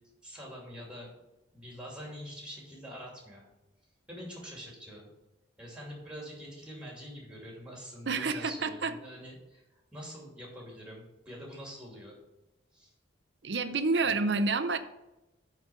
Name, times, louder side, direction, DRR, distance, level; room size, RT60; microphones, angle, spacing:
voice 1, 0.2-1.1 1.5-3.5 4.1-5.1 5.6-9.6 9.9-12.2 12.7-12.9, equal, 5° right, -2 dB, 2.6 m, -45 dB
voice 2, 8.1-9.0 13.4-14.8, right 3 dB, 65° right, 11 dB, 0.6 m, -29 dB
9.1 x 4.0 x 6.9 m, 1.0 s
head